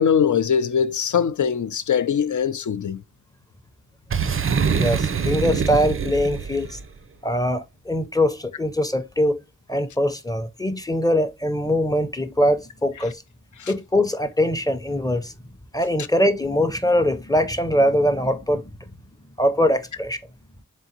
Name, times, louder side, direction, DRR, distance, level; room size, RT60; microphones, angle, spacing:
voice 1, 0.0-3.0 13.6-13.7, left 7 dB, 65° left, 0.5 m, -21 dB
Boom, 4.1-6.8, right 6 dB, 40° right, 0.4 m, -24 dB
voice 2, 4.7-6.8 7.2-9.4 9.7-13.2 13.7-15.3 15.7-18.7 19.4-20.2, equal, 10° left, 0.6 m, -22 dB
3.7 x 3.7 x 2.7 m
wide cardioid pair, 60°, 32 cm